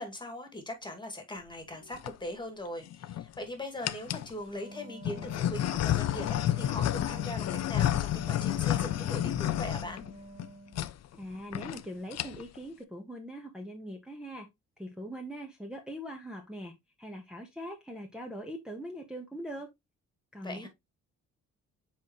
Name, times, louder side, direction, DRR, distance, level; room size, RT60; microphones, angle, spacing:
voice 1, 0.0-10.0 20.4-20.7, left 1 dB, 15° left, 2.2 m, -40 dB
sound 1, 1.7-2.1 2.8-3.4 3.8-4.3 5.0-10.5 10.7-10.9 11.2-11.3 11.5-11.8 12.1-12.6, left 12 dB, 60° left, 0.6 m, -30 dB
Wind instrument woodwind instrument, 4.4-10.9, right 1 dB, 30° right, 1.6 m, -49 dB
voice 2, 11.1-14.5 14.8-19.7 20.3-20.7, equal, 5° right, 1.3 m, -42 dB
7.2 x 4.3 x 3.1 m
cardioid pair, 90°, 30 cm